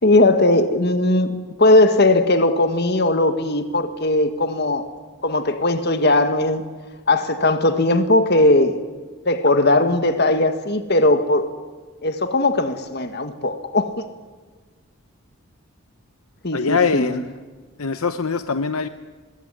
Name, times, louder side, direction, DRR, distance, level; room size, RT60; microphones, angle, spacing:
voice 1, 0.0-4.9 5.2-6.6 7.1-8.8 9.2-11.5 12.0-14.1 16.4-17.2, left 2 dB, 45° left, 1.8 m, -18 dB
voice 2, 16.5-17.2 17.8-18.9, left 5 dB, 75° left, 0.9 m, -22 dB
24.0 x 21.0 x 10.0 m
head